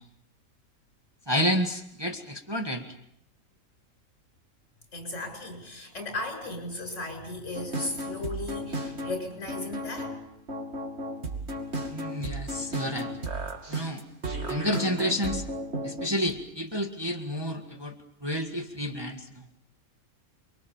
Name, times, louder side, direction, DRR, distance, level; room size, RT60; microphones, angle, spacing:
voice 1, 1.3-2.9 11.9-13.1 13.7-14.0 14.5-15.5 15.8-18.0 18.2-19.4, equal, 15° right, 3 dB, 1.9 m, -30 dB
voice 2, 4.9-10.2, left 2 dB, 55° left, 5 dB, 7.5 m, -36 dB
sound 1, 7.5-16.1, right 1 dB, 50° right, 3.0 m, -34 dB
29.0 x 23.5 x 7.3 m, 0.76 s
omnidirectional pair, 1.5 m